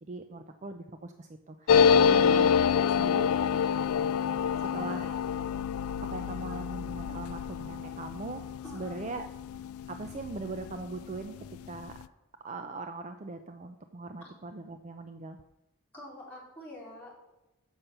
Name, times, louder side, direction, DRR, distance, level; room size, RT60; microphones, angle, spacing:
voice 1, 0.0-3.3 4.5-5.1 6.1-8.4 8.7-9.3 9.9-11.3 11.7-12.0 12.4-15.4, right 3 dB, 30° right, 7 dB, 0.5 m, -40 dB
sound 1, 1.7-10.8 11.1-11.2 11.4-12.0, left 7 dB, 75° left, 0.3 m, -27 dB
voice 2, 4.7-5.2 8.6-9.1 14.2-14.3 15.9-17.3, left 1 dB, 5° left, -7 dB, 3.5 m, -46 dB
7.3 x 5.8 x 6.6 m, 1.0 s
head